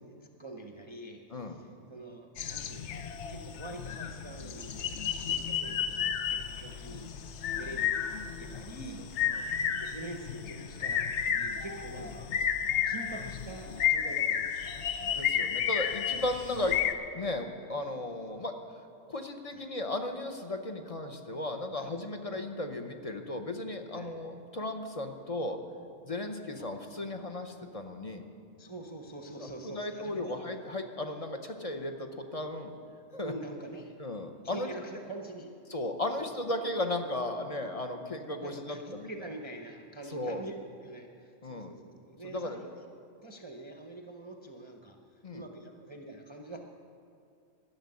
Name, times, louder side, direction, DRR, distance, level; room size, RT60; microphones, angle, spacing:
voice 1, 0.0-9.1 9.7-12.3 12.9-14.8 19.5-19.6 21.7-21.9 23.9-24.1 26.5-26.7 28.6-30.4 33.2-33.9 34.4-35.6 36.5-36.6 38.4-40.5 40.8-42.8 43.2-46.6, right 2 dB, 30° right, 2 dB, 0.6 m, -45 dB
sound 1, 2.4-16.9, left 8 dB, 70° left, 0.9 m, -32 dB
voice 2, 15.0-16.8 17.1-18.5 19.1-25.6 26.0-28.2 29.4-32.7 33.1-33.3 34.0-34.7 35.7-39.1 40.1-40.4 41.4-41.8 42.2-42.6 45.2-45.5, left 1 dB, 35° left, 5 dB, 0.7 m, -35 dB
13.0 x 6.8 x 9.6 m, 2.6 s
omnidirectional pair, 1.3 m